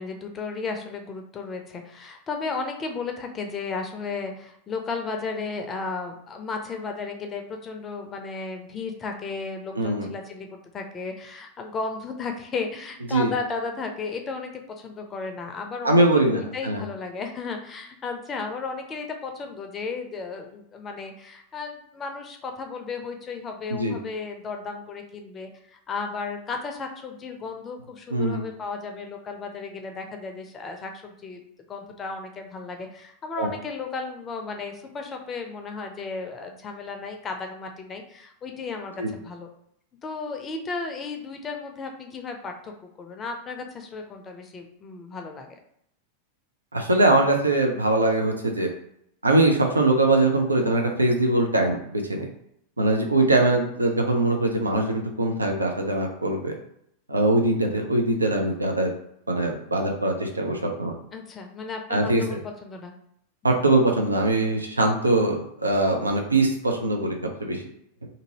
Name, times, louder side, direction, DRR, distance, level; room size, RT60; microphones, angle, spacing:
voice 1, 0.0-31.4 31.7-39.5 40.0-45.6 53.2-53.6 61.1-62.9, left 4 dB, 25° left, 4 dB, 0.5 m, -34 dB
voice 2, 9.7-10.1 13.1-13.3 15.8-16.8 23.7-24.0 28.1-28.4 33.4-33.5 39.0-39.1 46.7-48.7 49.2-52.3 52.8-56.5 57.1-58.9 59.3-60.9 61.9-62.2 63.4-67.6, right 2 dB, 80° right, 2 dB, 0.5 m, -22 dB
2.6 x 2.6 x 2.9 m, 0.73 s
figure-of-eight pair, 90°, 0 cm